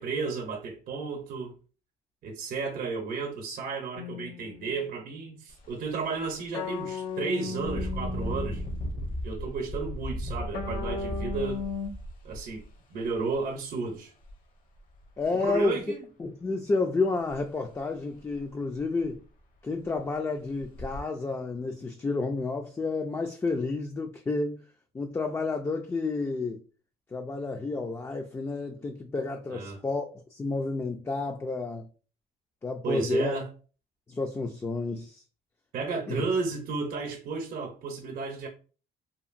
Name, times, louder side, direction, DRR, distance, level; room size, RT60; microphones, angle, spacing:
voice 1, 0.0-1.5 2.2-8.6 9.2-11.7 12.2-12.6 12.9-14.1 15.4-16.0 29.5-29.8 32.8-33.5 35.7-38.5, right 4 dB, 60° right, 0.7 m, -33 dB
sound 1, 4.0-4.9 6.5-8.9 10.5-11.9, left 5 dB, 90° left, 0.5 m, -36 dB
Engine, 5.5-5.7 6.2-6.3 7.6-13.3 14.2-14.3 14.8-15.5 17.3-17.4 17.8-17.9 18.4-18.5 18.8-19.3 19.8-20.0 20.6-21.0, equal, 55° left, 0.7 m, -36 dB
voice 2, 15.2-15.8 16.2-19.2 19.6-24.6 24.9-26.6 27.1-31.9 32.6-33.4 34.1-35.2 36.1-36.2, left 3 dB, 15° left, 0.3 m, -30 dB
2.8 x 2.5 x 2.4 m
cardioid pair, 110°, 17 cm